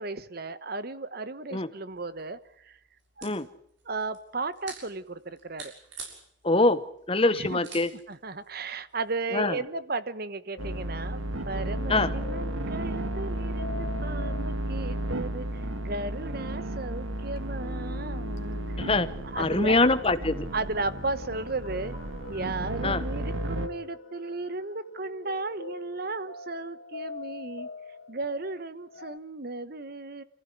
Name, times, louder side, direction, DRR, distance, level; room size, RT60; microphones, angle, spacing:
voice 1, 0.0-2.8 3.2-3.3 3.9-5.7 7.3-7.6 8.1-18.8 19.3-19.9 20.5-22.0 22.3-27.7 28.1-30.2, right 3 dB, 50° right, 14 dB, 1.1 m, -35 dB
sound 1, 1.9-9.2, right 4 dB, 70° right, 6.9 m, -49 dB
voice 2, 6.4-6.8 7.1-7.9 9.3-9.6 11.9-12.1 18.8-19.1 19.4-20.5 22.8-23.0, left 2 dB, 30° left, 13 dB, 1.1 m, -24 dB
sound 2, 10.5-29.2, left 3 dB, 80° left, 2.4 m, -45 dB
sound 3, 10.6-23.7, right 1 dB, 85° right, 2.0 m, -33 dB
26.5 x 15.5 x 9.5 m, 0.68 s
head